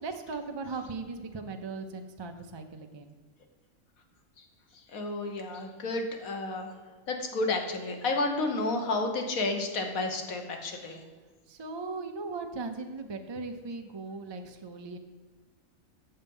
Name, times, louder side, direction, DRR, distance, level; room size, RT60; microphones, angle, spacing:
voice 1, 0.0-3.1 11.5-15.0, right 3 dB, 35° right, 5 dB, 0.4 m, -38 dB
voice 2, 4.9-6.7 7.1-11.0, left 2 dB, 90° left, 3 dB, 1.6 m, -31 dB
7.9 x 6.5 x 5.4 m, 1.4 s
omnidirectional pair, 1.4 m